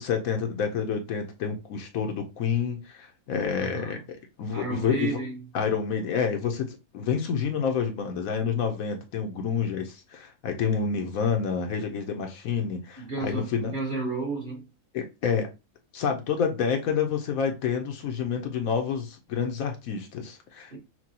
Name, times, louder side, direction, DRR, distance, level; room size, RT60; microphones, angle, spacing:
voice 1, 0.0-4.0 4.4-5.1 5.5-13.7 14.9-15.5 15.9-20.8, left 6 dB, 70° left, 1.1 m, -28 dB
voice 2, 3.6-4.0 4.5-5.5 13.0-14.7 20.7-20.8, right 3 dB, 35° right, 1.4 m, -32 dB
5.9 x 2.3 x 2.8 m
omnidirectional pair, 1.6 m